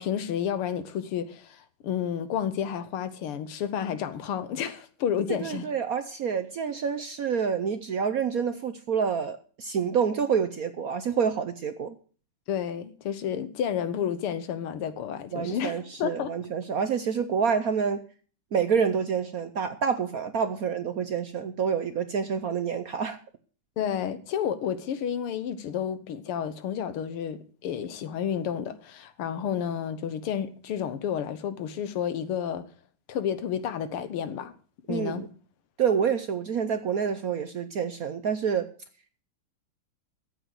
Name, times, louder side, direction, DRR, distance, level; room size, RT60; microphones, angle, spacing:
voice 1, 0.0-5.7 12.5-16.3 23.8-32.7 33.1-34.5 34.9-35.3, left 8 dB, 90° left, 2.0 m, -31 dB
voice 2, 5.3-11.9 15.3-18.0 18.5-23.2 34.9-35.3 35.8-38.7, right 7 dB, 60° right, 0.9 m, -27 dB
14.0 x 7.9 x 6.4 m
omnidirectional pair, 2.4 m